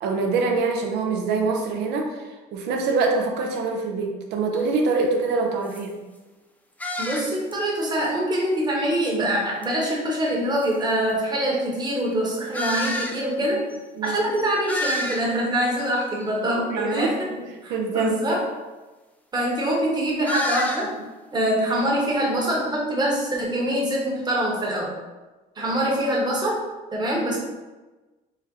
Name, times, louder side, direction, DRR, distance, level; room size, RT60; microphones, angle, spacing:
voice 1, 0.0-5.9 13.4-13.6 14.0-14.3 16.7-17.1 17.7-18.2, right 4 dB, 85° right, 2 dB, 0.7 m, -24 dB
sound 1, 4.5-4.7 5.2-5.3 5.6-5.9 6.8-7.5 7.8-7.9 9.6-9.7 10.6-10.7 12.5-13.2 13.7-13.8 14.0-14.1 14.4-15.5 15.9-16.3 20.2-20.9, left 1 dB, 10° left, 0.4 m, -29 dB
voice 2, 7.0-13.6 14.0-17.2 17.6-18.4 19.3-20.9 21.3-24.9 25.6-26.6 26.9-27.4, right 1 dB, 25° right, -3 dB, 1.1 m, -24 dB
4.1 x 2.1 x 3.9 m, 1.2 s
cardioid pair, 110°, 17 cm